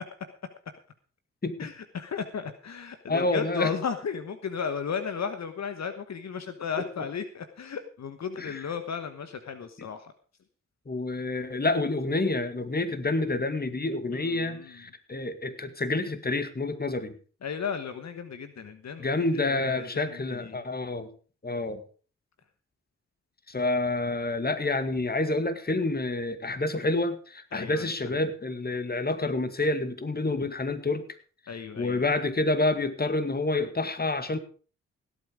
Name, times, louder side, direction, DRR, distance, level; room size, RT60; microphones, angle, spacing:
voice 1, 1.6-10.1 14.1-14.6 17.4-20.6 27.5-27.9 31.5-32.1, left 6 dB, 65° left, 9 dB, 1.3 m, -35 dB
voice 2, 3.1-3.7 6.8-6.9 8.4-8.7 10.9-17.2 19.0-21.1 21.4-21.8 23.5-31.1 31.8-34.4, left 2 dB, 35° left, 11 dB, 2.0 m, -28 dB
17.5 x 8.4 x 5.1 m, 0.39 s
cardioid pair, 55°, 29 cm